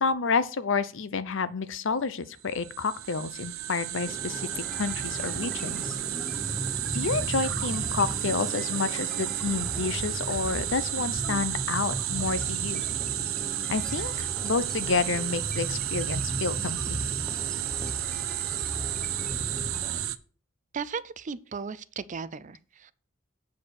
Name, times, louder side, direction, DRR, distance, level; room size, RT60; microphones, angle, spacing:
voice 1, 0.0-6.0 6.9-12.8 13.7-17.0, left 4 dB, 65° left, 0.7 m, -30 dB
sound 1, 2.4-20.2, right 13 dB, 85° right, 0.6 m, -32 dB
sound 2, 4.0-20.1, equal, 5° left, 0.8 m, -37 dB
sound 3, 7.4-12.3, right 3 dB, 60° right, 1.5 m, -46 dB
voice 2, 20.7-22.9, right 5 dB, 40° right, 0.4 m, -36 dB
8.2 x 4.9 x 6.4 m
head